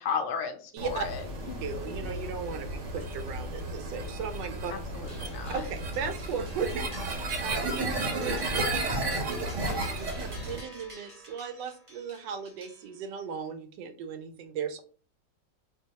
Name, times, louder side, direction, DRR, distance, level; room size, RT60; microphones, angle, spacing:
voice 1, 0.0-1.7 4.7-5.6 7.8-7.9, left 6 dB, 65° left, 4 dB, 0.7 m, -35 dB
voice 2, 0.7-1.0 1.6-4.7 5.5-14.8, right 6 dB, 80° right, 8 dB, 1.2 m, -37 dB
sound 1, 0.8-10.6, right 2 dB, 55° right, 0.9 m, -33 dB
sound 2, 5.1-13.2, equal, 40° right, 0.4 m, -50 dB
4.5 x 2.1 x 2.8 m, 0.40 s
omnidirectional pair, 1.9 m